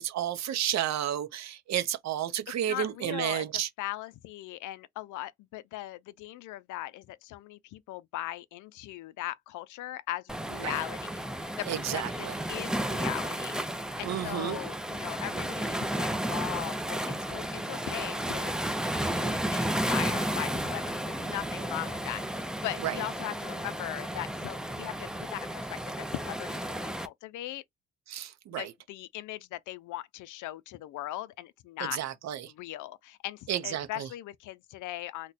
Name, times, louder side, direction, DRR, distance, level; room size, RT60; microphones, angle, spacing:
voice 1, 0.0-3.7 10.6-10.8 11.7-12.4 14.0-14.6 22.8-22.9 28.1-28.7 31.8-32.5 33.5-34.1, right 11 dB, 60° right, 0.7 m, -31 dB
voice 2, 2.7-3.5 3.8-18.5 19.0-27.6 28.5-32.0 32.5-35.3, left 15 dB, 80° left, 0.5 m, -39 dB
Waves surf, 10.3-27.1, right 1 dB, ahead, 0.4 m, -33 dB
2.8 x 2.2 x 4.0 m
cardioid pair, 90°, 30 cm